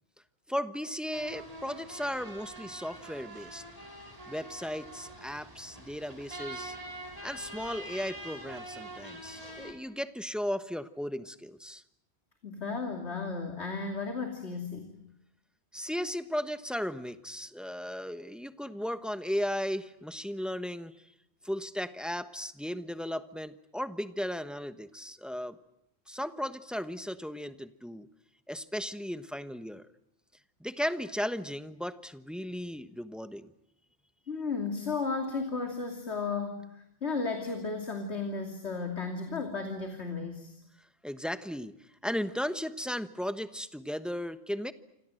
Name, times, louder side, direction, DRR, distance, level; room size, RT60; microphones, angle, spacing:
voice 1, 0.5-3.6 4.3-6.8 7.2-11.8 15.7-21.0 21.4-25.6 26.1-28.1 28.5-29.8 30.6-33.5 41.0-41.7 42.0-44.7, equal, ahead, 11 dB, 1.1 m, -36 dB
sound 1, 1.1-9.7, right 1 dB, 35° right, 4.8 m, -45 dB
voice 2, 12.4-14.9 34.3-40.5, left 4 dB, 85° left, 4 dB, 3.1 m, -34 dB
29.0 x 26.0 x 7.8 m, 0.80 s
omnidirectional pair, 1.1 m